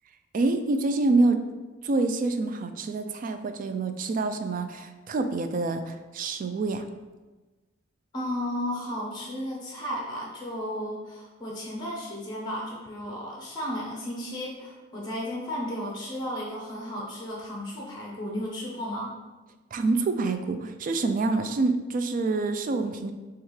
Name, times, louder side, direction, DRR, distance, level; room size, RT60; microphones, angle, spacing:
voice 1, 0.3-1.4 1.8-6.8 19.7-23.1, right 3 dB, 45° right, 8 dB, 0.3 m, -26 dB
voice 2, 8.1-19.1, equal, 20° left, -3 dB, 0.7 m, -34 dB
6.3 x 2.4 x 3.2 m, 1.2 s
head